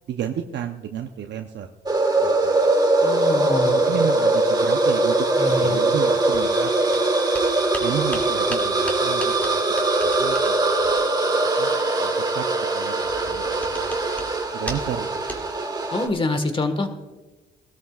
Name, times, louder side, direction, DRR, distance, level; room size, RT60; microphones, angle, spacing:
voice 1, 0.1-1.7 2.2-2.6 3.9-7.2 7.8-9.6 10.0-11.0 11.6-11.7 12.0-12.5 12.7-14.0 14.5-15.5, right 9 dB, 65° right, 5 dB, 0.7 m, -32 dB
sound 1, 1.9-16.1, right 2 dB, 20° right, 1.5 m, -21 dB
voice 2, 3.0-3.8 5.4-5.8 15.9-16.9, left 2 dB, 25° left, 8 dB, 1.5 m, -25 dB
sound 2, 6.9-7.0 7.3-11.0 13.0-14.3 14.6-15.0 15.3-15.4, equal, 10° left, 2.4 m, -36 dB
18.5 x 13.0 x 2.4 m, 1.2 s
cardioid pair, 90°, 20 cm